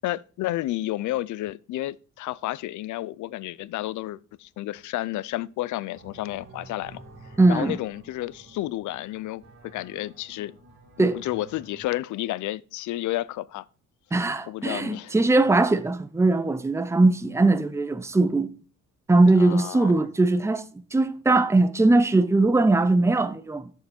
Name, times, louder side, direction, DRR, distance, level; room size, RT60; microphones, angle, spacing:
voice 1, 0.0-7.0 7.5-10.5 11.0-13.6 14.5-15.1 19.4-20.0, left 15 dB, 75° left, 0.5 m, -31 dB
sound 1, 5.9-11.8, right 2 dB, 60° right, 2.7 m, -50 dB
voice 2, 7.4-7.8 11.0-11.2 14.1-18.5 19.1-23.7, right 2 dB, 10° right, 0.7 m, -20 dB
7.9 x 6.8 x 4.3 m
cardioid pair, 90°, 30 cm